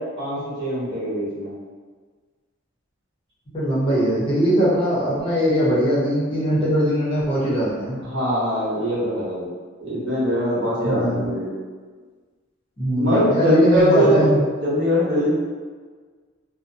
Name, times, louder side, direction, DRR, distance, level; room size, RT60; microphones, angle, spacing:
voice 1, 0.0-1.5 8.0-9.5 9.8-11.5 13.0-14.3 14.6-15.3, equal, 60° right, -9 dB, 1.0 m, -22 dB
voice 2, 3.5-8.0 10.8-11.2 12.8-14.4, equal, 25° left, -9 dB, 0.7 m, -20 dB
2.6 x 2.1 x 2.6 m, 1.5 s
head